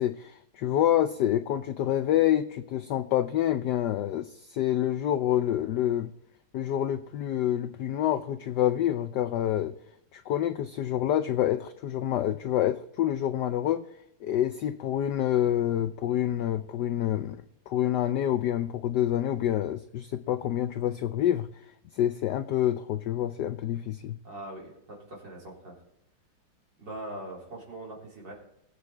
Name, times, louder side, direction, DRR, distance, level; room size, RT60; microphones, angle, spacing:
voice 1, 0.0-6.1 6.5-9.7 10.1-13.9 14.2-17.4 17.7-21.5 21.9-24.2, left 11 dB, 80° left, 10 dB, 0.9 m, -27 dB
voice 2, 24.2-25.7 26.8-28.3, right 1 dB, 55° right, -3 dB, 4.4 m, -41 dB
20.5 x 8.2 x 3.3 m, 0.80 s
omnidirectional pair, 2.4 m